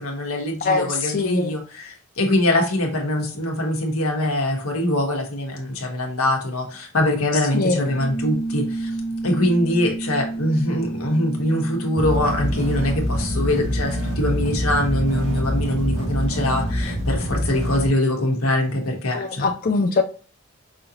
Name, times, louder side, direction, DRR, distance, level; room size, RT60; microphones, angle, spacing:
voice 1, 0.0-9.0 9.2-19.5, left 1 dB, 80° left, 1 dB, 1.3 m, -23 dB
voice 2, 0.6-1.5 7.5-7.8 19.1-20.0, left 3 dB, 40° left, 4 dB, 0.4 m, -22 dB
sound 1, 7.9-17.1, right 2 dB, 55° left, 0.9 m, -32 dB
sound 2, 12.0-17.9, equal, 50° right, 2.3 m, -25 dB
5.5 x 2.7 x 2.8 m, 0.39 s
head